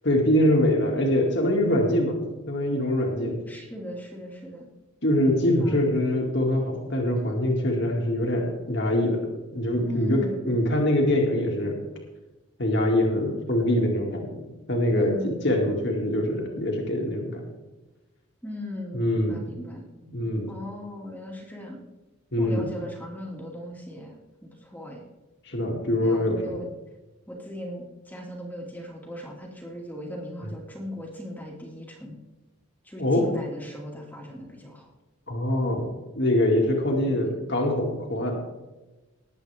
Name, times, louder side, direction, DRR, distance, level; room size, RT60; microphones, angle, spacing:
voice 1, 0.0-2.2 2.5-3.4 5.0-9.2 9.5-11.8 12.6-17.4 18.9-19.4 20.1-20.5 22.3-22.7 25.4-26.6 33.0-33.2 35.3-35.9 36.2-38.4, left 1 dB, 55° left, 0 dB, 2.3 m, -24 dB
voice 2, 3.5-4.7 5.6-5.9 9.8-10.5 14.9-15.6 18.4-19.9 20.5-21.8 22.4-25.0 26.0-26.7 27.3-32.2 32.8-34.9 37.1-37.3, left 1 dB, 10° left, -1 dB, 2.1 m, -38 dB
20.5 x 8.3 x 3.5 m, 1.1 s
head